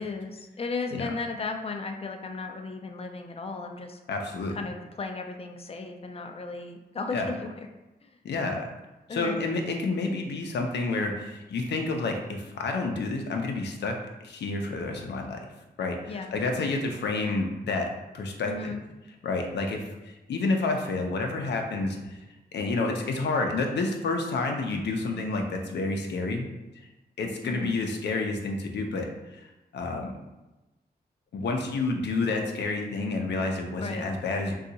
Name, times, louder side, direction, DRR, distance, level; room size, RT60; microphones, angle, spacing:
voice 1, 0.0-4.0 4.5-7.7 8.0-8.2 9.1-9.5 16.1-16.3 18.5-18.8 27.4-27.8 33.8-34.1, left 4 dB, 35° left, 5 dB, 0.4 m, -35 dB
voice 2, 4.1-4.6 7.1-7.3 8.2-8.7 9.1-13.9 14.2-15.4 15.8-17.9 18.1-18.7 19.2-22.2 22.5-26.5 27.2-29.1 29.3-30.1 31.3-34.5, left 3 dB, 90° left, 2 dB, 0.5 m, -29 dB
2.7 x 2.3 x 3.9 m, 1.0 s
wide cardioid pair, 100°, 17 cm